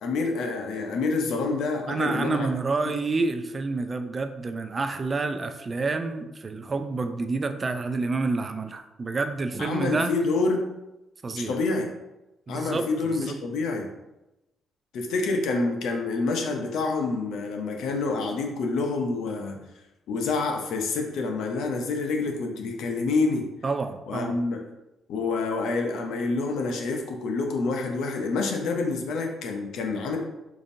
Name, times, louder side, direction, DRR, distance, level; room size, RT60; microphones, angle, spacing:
voice 1, 0.0-2.5 9.6-10.6 11.4-11.9 12.5-13.9 14.9-19.6 20.1-23.4 24.1-24.6 25.1-30.2, left 3 dB, 80° left, 3 dB, 0.6 m, -27 dB
voice 2, 1.9-10.1 11.2-11.5 12.5-12.9 13.2-13.4 23.6-24.4, right 3 dB, 35° right, 8 dB, 0.3 m, -28 dB
4.9 x 2.6 x 2.6 m, 0.96 s
cardioid pair, 90°, 0 cm